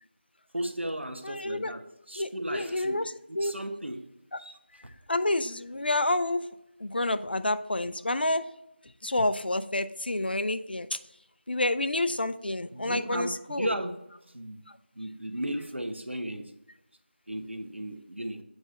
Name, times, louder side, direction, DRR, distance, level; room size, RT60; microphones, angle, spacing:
voice 1, 0.5-4.1 4.4-4.6 12.7-14.0 14.3-14.6 14.9-16.5 17.3-18.4, right 1 dB, 85° right, 7 dB, 1.2 m, -35 dB
voice 2, 1.2-1.7 2.2-3.5 4.3-4.4 5.1-6.5 6.8-8.5 9.0-11.0 11.5-13.7, left 2 dB, 60° left, 12 dB, 0.5 m, -29 dB
8.0 x 4.8 x 4.2 m, 0.87 s
figure-of-eight pair, 170°, 6 cm